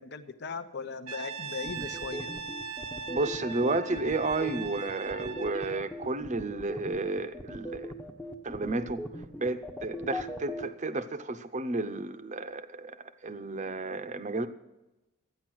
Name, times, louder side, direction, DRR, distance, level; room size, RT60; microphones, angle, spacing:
voice 1, 0.0-2.3, left 4 dB, 50° left, 10 dB, 0.8 m, -38 dB
Brass instrument, 1.1-5.9, right 4 dB, 80° right, 1.2 m, -40 dB
sound 1, 1.6-10.6, equal, 10° left, 0.9 m, -39 dB
voice 2, 3.1-7.9 8.4-9.0 9.4-13.0 13.2-14.5, right 2 dB, 35° right, 9 dB, 0.7 m, -32 dB
13.5 x 9.7 x 6.2 m, 0.99 s
head